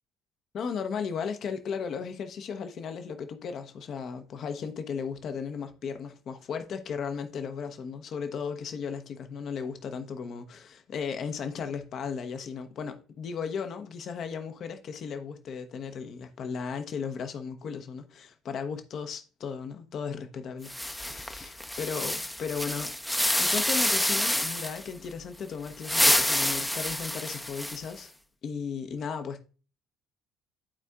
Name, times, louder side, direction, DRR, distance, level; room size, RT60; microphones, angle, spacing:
voice 1, 0.5-28.1 28.4-29.4, left 6 dB, 50° left, 0.9 m, -36 dB
sound 1, 20.6-24.9 25.7-28.0, left 1 dB, 5° left, 0.7 m, -28 dB
12.5 x 4.4 x 2.4 m
figure-of-eight pair, 55°, 0 cm